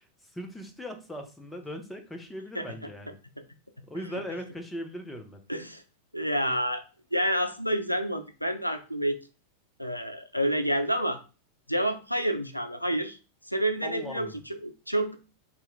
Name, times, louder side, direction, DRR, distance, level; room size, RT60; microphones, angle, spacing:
voice 1, 0.0-3.2 3.9-5.4 13.8-14.3, equal, 5° left, 4 dB, 0.7 m, -39 dB
voice 2, 5.5-5.8 6.1-6.8 7.1-9.2 9.8-11.2 11.7-13.2 13.5-15.2, equal, 90° left, 8 dB, 0.4 m, -28 dB
3.0 x 2.8 x 3.6 m, 0.33 s
figure-of-eight pair, 90°, 0 cm